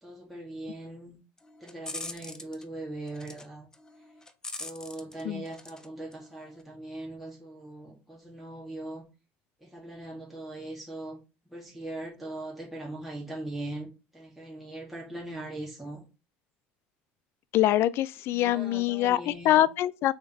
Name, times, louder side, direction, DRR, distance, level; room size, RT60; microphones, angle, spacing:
voice 1, 0.0-1.2 1.6-3.7 4.6-9.0 9.6-11.2 11.5-13.9 14.1-16.0 18.3-19.6, right 2 dB, ahead, 2.0 m, -40 dB
sound 1, 1.4-2.6 3.1-3.5 3.7-5.9 6.1-6.6, left 2 dB, 15° left, 0.7 m, -42 dB
voice 2, 17.5-20.1, left 14 dB, 60° left, 0.4 m, -24 dB
6.1 x 3.7 x 4.2 m
cardioid pair, 120°, 5 cm